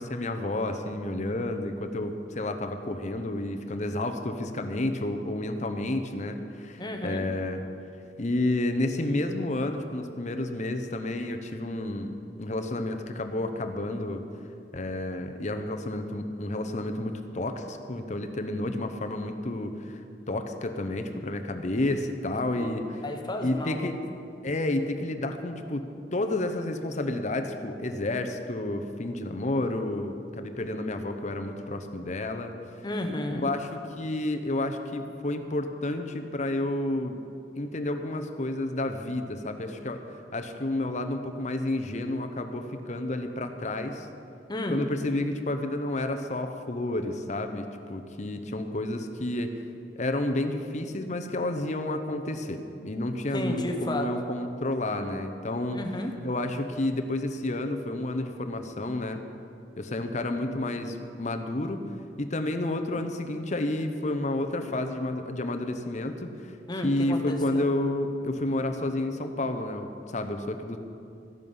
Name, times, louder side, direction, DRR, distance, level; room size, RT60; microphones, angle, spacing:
voice 1, 0.0-7.6 8.2-14.2 14.7-20.0 20.3-22.8 23.4-24.0 24.4-32.5 33.3-37.2 37.6-40.0 40.3-44.1 44.7-49.6 49.9-55.8 56.2-59.2 59.8-61.8 62.2-66.6 66.8-70.8, left 1 dB, 40° left, 7 dB, 0.8 m, -30 dB
voice 2, 6.8-7.3 22.5-23.9 32.8-33.5 44.5-44.8 53.3-54.1 55.7-56.1 66.7-67.7, left 1 dB, 25° left, 4 dB, 1.2 m, -32 dB
14.0 x 10.5 x 5.5 m, 2.6 s
head